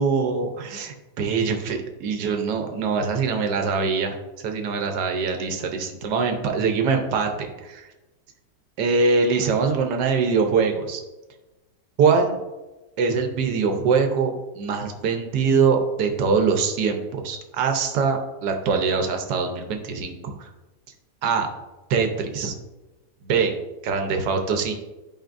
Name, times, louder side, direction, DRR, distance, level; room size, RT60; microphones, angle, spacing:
voice 1, 0.0-4.1 4.4-7.9 8.8-11.0 12.0-12.4 13.0-20.5 21.2-21.5 21.9-22.5 23.2-23.6 23.8-24.7, right 5 dB, 75° right, 4 dB, 1.5 m, -23 dB
11.5 x 5.0 x 2.6 m, 1.1 s
omnidirectional pair, 1.8 m